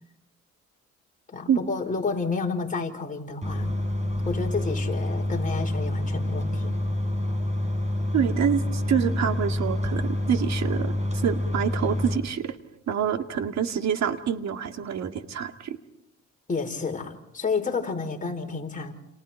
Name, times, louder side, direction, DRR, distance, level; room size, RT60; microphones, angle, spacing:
voice 1, 1.3-3.7 4.2-6.8 16.5-18.9, left 4 dB, 25° left, 1 dB, 5.1 m, -30 dB
sound 1, 3.4-12.2, left 1 dB, 20° right, 6.5 m, -27 dB
voice 2, 8.1-10.9 11.2-12.6 12.9-15.8, right 8 dB, 60° right, 7 dB, 2.1 m, -26 dB
30.0 x 28.0 x 4.5 m, 0.83 s
cardioid pair, 90°, 30 cm